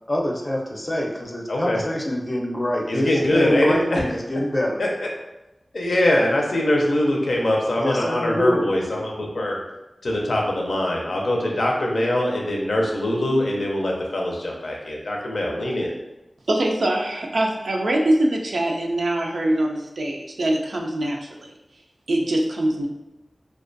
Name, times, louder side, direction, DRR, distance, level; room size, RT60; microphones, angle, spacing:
voice 1, 0.1-4.8 7.8-8.7, left 1 dB, 30° left, -1 dB, 0.5 m, -25 dB
voice 2, 1.5-1.8 2.9-4.1 4.8-4.9 5.7-9.6 10.0-15.9, left 1 dB, 80° left, -1 dB, 0.5 m, -22 dB
voice 3, 16.5-21.3 22.1-22.8, right 1 dB, 90° right, 0 dB, 0.3 m, -23 dB
2.3 x 2.2 x 2.5 m, 0.95 s
cardioid pair, 45°, 0 cm